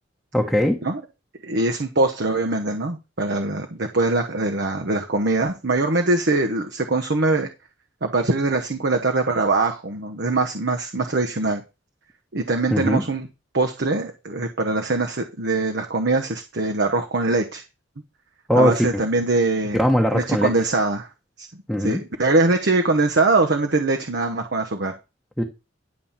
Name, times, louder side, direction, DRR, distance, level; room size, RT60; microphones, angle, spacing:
voice 1, 0.3-0.8 12.7-13.0 18.5-19.0 19.8-20.5 21.7-22.0 25.4-25.5, equal, ahead, 0 dB, 1.1 m, -20 dB
voice 2, 1.4-7.5 8.0-11.6 12.3-13.3 13.5-17.6 18.5-19.8 20.1-21.1 21.4-21.5 21.8-24.9, right 3 dB, 60° right, 5 dB, 1.1 m, -22 dB
11.0 x 4.2 x 7.3 m, 0.27 s
head